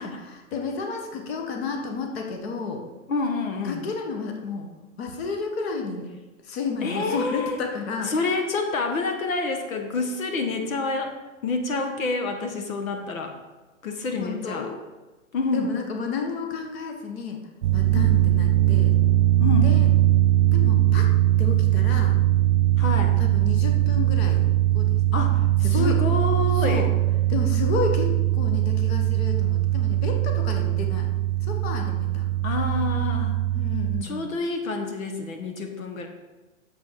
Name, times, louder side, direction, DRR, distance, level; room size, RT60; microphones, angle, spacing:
voice 1, 0.0-2.8 3.6-4.7 5.0-6.1 6.4-8.1 14.1-14.8 15.5-17.4 17.7-18.9 19.6-19.9 20.5-21.1 21.4-22.2 23.2-24.4 24.7-25.0 25.6-26.0 26.5-26.9 27.3-31.1 31.4-32.3 33.5-34.3, left 5 dB, 50° left, 3 dB, 1.5 m, -31 dB
voice 2, 3.1-3.8 6.8-7.6 8.1-11.1 11.4-13.3 13.8-14.7 15.3-15.7 17.9-18.1 19.4-19.8 22.8-23.2 25.1-26.9 32.4-33.4 34.0-36.1, left 3 dB, 90° left, 5 dB, 1.5 m, -28 dB
sound 1, 17.6-34.0, right 14 dB, 65° right, 0.7 m, -21 dB
7.5 x 7.1 x 5.8 m, 1.2 s
hypercardioid pair, 155°, 39 cm